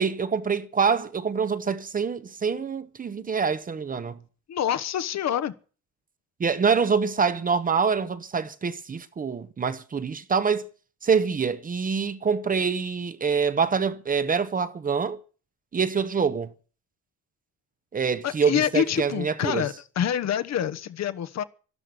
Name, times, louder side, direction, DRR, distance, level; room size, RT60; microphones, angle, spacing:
voice 1, 0.0-4.2 6.4-10.6 11.0-15.2 15.7-16.5 17.9-19.7, right 5 dB, 25° right, 0.9 m, -25 dB
voice 2, 4.5-5.5 18.2-21.4, left 9 dB, 55° left, 1.2 m, -26 dB
13.0 x 12.5 x 7.8 m
cardioid pair, 175°, 33 cm